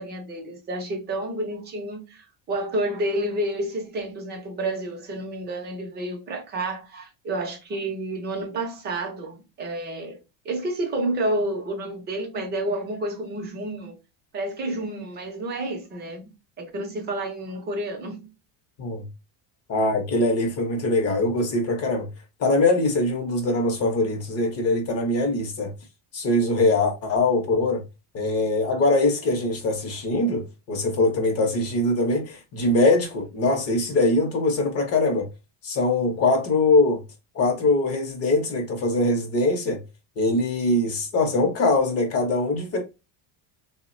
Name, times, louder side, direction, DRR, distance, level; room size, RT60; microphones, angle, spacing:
voice 1, 0.0-14.0 14.3-16.3 16.6-18.3, right 1 dB, 20° right, 0.5 m, -30 dB
voice 2, 19.7-22.1 22.4-25.7 26.1-27.8 28.1-35.3 35.6-37.0 37.3-39.8 40.2-42.8, left 2 dB, 35° left, 0.6 m, -22 dB
3.2 x 2.1 x 2.4 m
cardioid pair, 165°, 46 cm